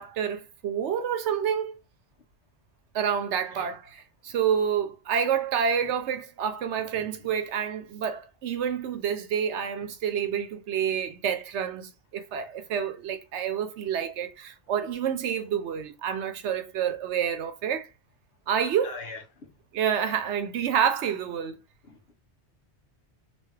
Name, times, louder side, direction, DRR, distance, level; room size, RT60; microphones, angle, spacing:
voice 1, 0.0-1.8 2.9-17.9 18.5-19.0 19.7-21.6, right 8 dB, 85° right, 1.0 m, -28 dB
voice 2, 6.9-7.3 18.8-19.5 21.9-22.1, left 4 dB, 65° left, 1.1 m, -43 dB
3.3 x 2.9 x 3.2 m
omnidirectional pair, 1.1 m